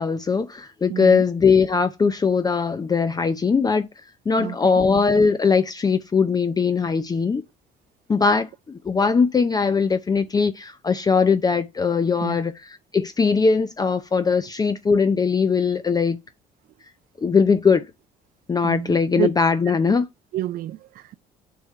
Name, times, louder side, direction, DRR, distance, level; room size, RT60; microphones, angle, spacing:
voice 1, 0.0-3.9 4.3-7.4 8.1-12.5 12.9-16.2 17.2-17.8 18.5-20.0, left 5 dB, 25° left, 0.6 m, -20 dB
voice 2, 0.9-1.3 4.3-4.8 12.2-12.4 18.6-19.3 19.9-20.0 20.3-21.1, right 13 dB, 60° right, 0.4 m, -29 dB
6.8 x 3.6 x 4.2 m
cardioid pair, 110°, 17 cm